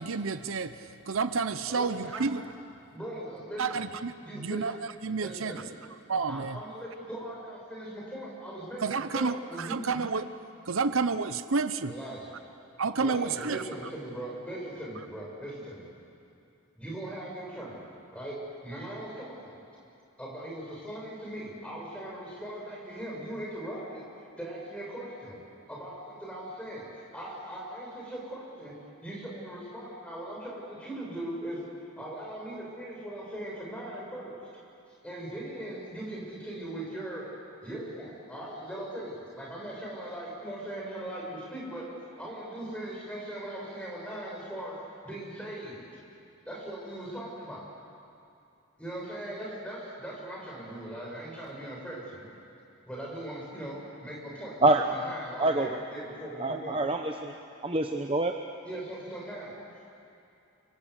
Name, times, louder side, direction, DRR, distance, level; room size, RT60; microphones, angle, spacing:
voice 1, 0.0-2.4 3.6-4.7 5.0-5.6 6.1-6.6 8.8-10.3 10.7-11.9 12.8-13.6, right 4 dB, 80° right, 12 dB, 0.8 m, -30 dB
voice 2, 1.7-2.3 2.9-3.9 4.2-4.7 5.2-5.7 6.3-9.9 11.9-12.3 13.0-15.9 16.8-18.4 18.6-19.6 20.2-24.0 24.4-25.4 25.7-28.7 29.0-31.7 32.0-34.4 35.0-37.3 37.6-41.9 42.2-44.8 45.0-45.8 46.5-47.6 48.8-52.3 52.8-56.8 58.7-59.9, right 1 dB, 5° left, -4 dB, 7.0 m, -39 dB
voice 3, 55.4-55.8 56.4-57.3 57.6-58.4, right 2 dB, 25° right, 4 dB, 0.9 m, -26 dB
29.5 x 24.5 x 8.2 m, 2.7 s
head